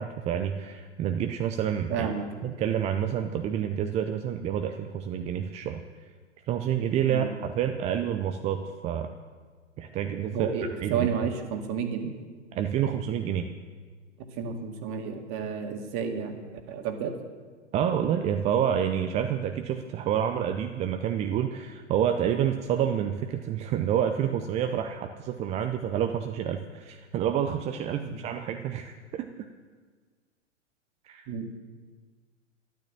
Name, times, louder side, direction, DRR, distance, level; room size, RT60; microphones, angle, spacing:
voice 1, 0.0-2.1 2.4-5.8 6.5-9.1 9.8-10.5 10.8-11.1 12.5-13.5 17.7-29.3 31.0-31.3, right 9 dB, 20° right, 7 dB, 0.6 m, -28 dB
voice 2, 1.9-2.3 7.1-7.3 10.3-12.1 14.3-16.4 16.7-17.2 28.0-28.2 31.3-31.5, right 6 dB, 35° right, 5 dB, 2.1 m, -31 dB
13.0 x 12.0 x 7.5 m, 1.5 s
figure-of-eight pair, 110°, 36 cm